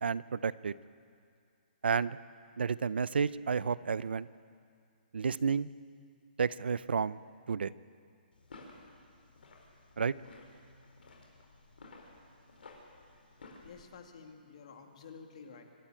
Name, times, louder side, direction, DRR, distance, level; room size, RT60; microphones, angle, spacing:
voice 1, 0.0-0.7 1.8-2.2 2.6-4.3 5.1-5.7 6.4-7.2 7.5-7.7 10.0-10.1, right 6 dB, 85° right, 18 dB, 0.6 m, -31 dB
sound 1, 8.3-13.8, left 3 dB, 75° left, 5.0 m, -55 dB
voice 2, 13.6-15.6, left 5 dB, 40° left, 4 dB, 2.1 m, -51 dB
25.5 x 13.0 x 8.9 m, 2.3 s
hypercardioid pair, 170°, 5 cm